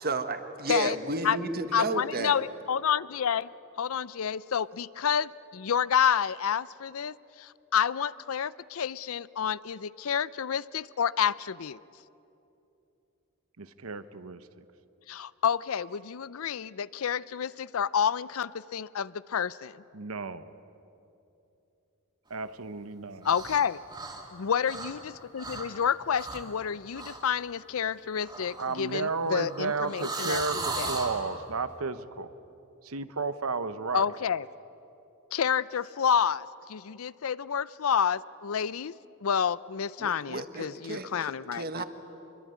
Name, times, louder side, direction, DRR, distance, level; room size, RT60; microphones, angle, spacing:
voice 1, 0.0-2.3 40.0-41.8, right 3 dB, 45° right, 9 dB, 1.5 m, -32 dB
voice 2, 1.7-3.5 3.8-11.8 15.1-19.8 23.2-23.8 24.3-25.0 25.3-31.0 33.9-34.5 35.3-38.9 39.2-41.8, left 7 dB, 70° left, 19 dB, 0.5 m, -29 dB
voice 3, 13.6-14.4 19.9-20.5 22.3-23.3 28.6-32.3 32.8-34.0, right 4 dB, 75° right, 12 dB, 1.0 m, -33 dB
sound 1, 23.2-23.6 23.9-25.1 25.4-25.7 26.1-26.5 26.9-27.2 28.2-31.2, right 3 dB, 20° right, 3.2 m, -37 dB
25.5 x 22.0 x 9.4 m, 2.9 s
head